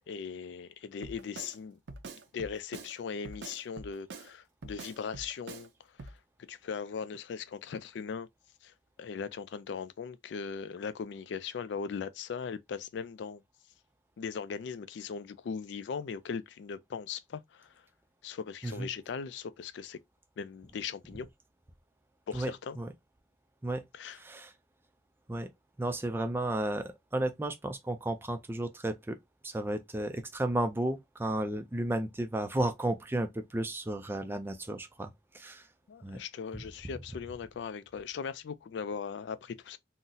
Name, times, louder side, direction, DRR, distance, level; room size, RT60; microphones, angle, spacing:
voice 1, 0.0-1.8 2.3-5.7 6.0-6.1 6.5-8.3 8.6-8.7 9.0-13.4 14.2-17.7 18.2-20.0 20.4-21.3 22.3-22.8 23.9-24.2 35.9-39.8, left 6 dB, 75° left, 0.3 m, -39 dB
Drum kit, 1.0-1.6 1.9-2.9 3.2-4.3 4.6-5.7 6.0-6.2, right 3 dB, 75° right, 0.5 m, -45 dB
voice 2, 22.3-22.9 23.6-24.5 25.3-25.5 25.8-29.2 29.4-35.7 36.0-36.2 36.5-36.6, right 1 dB, 10° right, 0.3 m, -33 dB
3.8 x 2.0 x 2.6 m
head